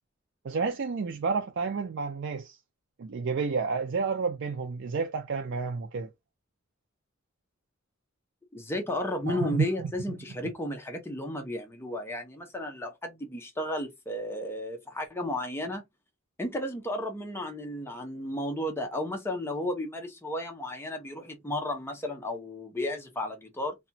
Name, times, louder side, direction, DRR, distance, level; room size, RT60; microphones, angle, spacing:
voice 1, 0.4-2.6 3.0-6.1 9.3-9.9, right 5 dB, 60° right, 0.4 m, -30 dB
voice 2, 8.5-15.8 16.4-23.8, left 1 dB, 10° left, 0.6 m, -33 dB
2.8 x 2.2 x 2.6 m
head